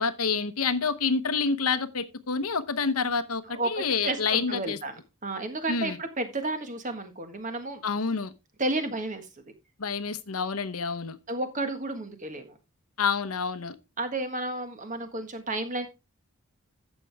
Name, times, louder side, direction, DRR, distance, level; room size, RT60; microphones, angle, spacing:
voice 1, 0.0-4.8 5.7-6.0 7.8-8.3 9.8-11.2 13.0-13.7, left 5 dB, 80° left, 0.9 m, -28 dB
voice 2, 3.5-7.8 8.6-9.3 11.3-12.6 14.0-15.9, right 2 dB, 35° right, 1.5 m, -32 dB
11.5 x 7.5 x 3.4 m
head